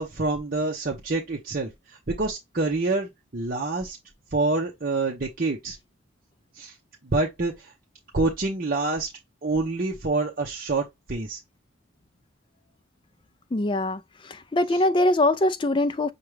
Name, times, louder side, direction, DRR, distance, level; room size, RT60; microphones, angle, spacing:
voice 1, 0.0-4.0 4.3-5.8 6.6-6.7 7.0-7.7 8.1-9.1 9.4-11.4, right 3 dB, 45° right, 0.7 m, -27 dB
voice 2, 13.5-16.1, left 1 dB, 25° left, 0.4 m, -23 dB
6.0 x 2.3 x 3.2 m
head